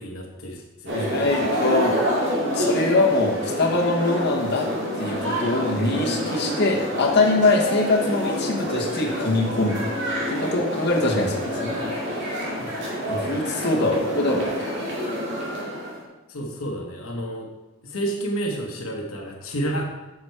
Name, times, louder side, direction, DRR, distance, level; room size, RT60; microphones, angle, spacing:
voice 1, 0.0-1.5 12.6-12.7 13.8-13.9 16.3-17.5 17.8-20.0, right 1 dB, 80° left, 0 dB, 1.1 m, -31 dB
voice 2, 0.9-2.0 2.5-4.7 4.9-9.8 10.3-11.8 12.1-12.4 13.1-14.7, left 2 dB, 55° left, -2 dB, 1.2 m, -23 dB
sound 1, 0.9-16.0, equal, 60° right, 2.3 m, -28 dB
7.3 x 6.0 x 4.6 m, 1.1 s
head